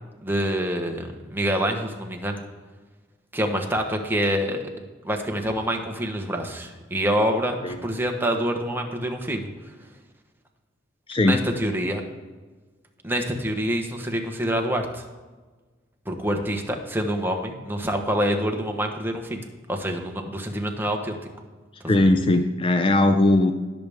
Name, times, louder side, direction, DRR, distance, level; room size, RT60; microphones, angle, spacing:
voice 1, 0.2-2.4 3.3-4.6 5.0-9.5 11.2-12.0 13.0-15.1 16.1-19.4 19.7-21.2 21.9-22.1, equal, 10° right, 2 dB, 1.1 m, -26 dB
voice 2, 21.9-23.5, left 2 dB, 30° left, 8 dB, 0.5 m, -19 dB
19.5 x 6.8 x 3.5 m, 1.3 s
head